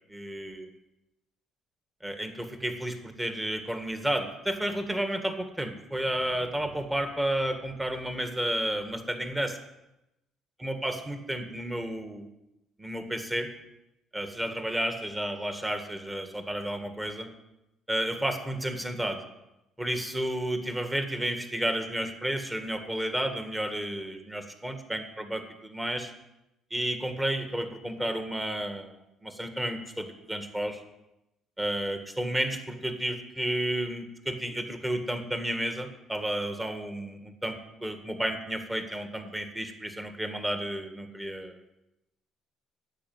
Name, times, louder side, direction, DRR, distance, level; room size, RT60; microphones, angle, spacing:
voice 1, 0.1-0.7 2.0-9.6 10.6-12.3 12.8-13.5 14.1-17.3 17.9-19.2 19.8-26.1 26.7-30.8 31.6-41.8, right 1 dB, 10° right, 6 dB, 1.9 m, -32 dB
10.5 x 8.3 x 9.5 m, 0.91 s
cardioid pair, 110°, 0 cm